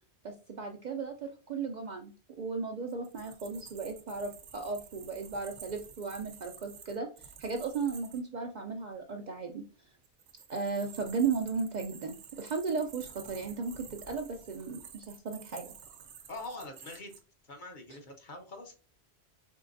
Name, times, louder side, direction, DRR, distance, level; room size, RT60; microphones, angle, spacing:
voice 1, 0.2-2.1 2.4-7.1 7.4-9.6 10.5-15.7, right 5 dB, 55° right, 4 dB, 0.5 m, -35 dB
sound 1, 2.9-8.2 10.0-17.2, right 7 dB, 85° right, 0.9 m, -51 dB
voice 2, 16.3-17.1 17.5-18.7, left 2 dB, 50° left, 3 dB, 0.9 m, -44 dB
4.6 x 3.2 x 2.5 m, 0.36 s
omnidirectional pair, 1.1 m